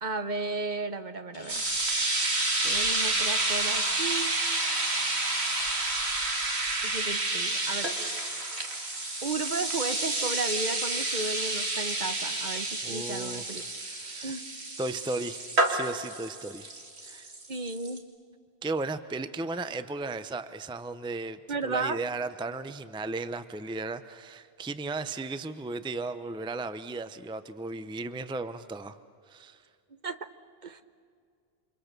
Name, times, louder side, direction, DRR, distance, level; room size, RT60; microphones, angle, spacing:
voice 1, 0.0-1.6 2.6-4.3 6.8-7.9 9.2-13.6 14.2-14.4 17.5-18.0 21.5-22.0 30.0-30.3 30.6-30.8, right 3 dB, 45° right, 9 dB, 1.1 m, -34 dB
sound 1, 1.3-11.2 11.5-11.6, left 2 dB, 45° left, 1.9 m, -42 dB
sound 2, 1.5-18.0, right 2 dB, 85° right, 2.6 m, -30 dB
voice 2, 12.8-13.4 13.8-14.4 14.8-15.4 15.7-16.7 17.0-17.3 18.6-29.0 29.3-29.6 30.6-30.8, right 3 dB, 5° right, 11 dB, 0.6 m, -35 dB
28.5 x 27.0 x 6.8 m, 2.3 s
omnidirectional pair, 1.1 m